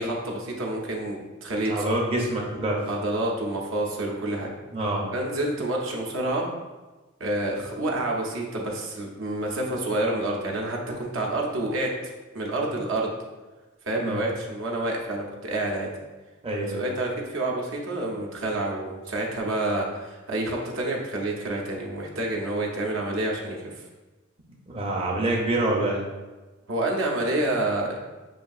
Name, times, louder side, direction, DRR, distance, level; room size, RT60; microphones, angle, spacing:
voice 1, 0.0-1.9 2.9-4.5 5.1-6.5 7.2-13.1 13.9-15.9 16.7-23.7 26.7-28.0, right 1 dB, 70° right, -1 dB, 0.7 m, -28 dB
voice 2, 1.6-2.8 4.7-5.1 14.0-14.3 16.4-16.9 24.7-26.0, right 1 dB, 30° right, -3 dB, 0.6 m, -26 dB
6.2 x 2.6 x 2.3 m, 1.2 s
head